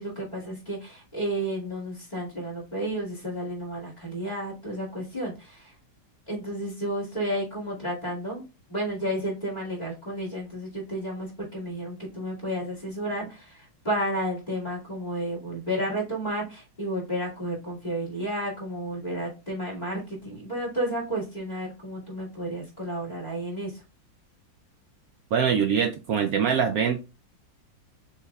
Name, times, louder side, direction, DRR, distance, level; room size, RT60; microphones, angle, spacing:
voice 1, 0.0-5.7 6.3-8.4 8.7-23.8, right 1 dB, 20° left, 2.2 m, -32 dB
voice 2, 25.3-27.0, right 7 dB, 80° right, 0.8 m, -23 dB
6.5 x 3.4 x 2.3 m
omnidirectional pair, 2.1 m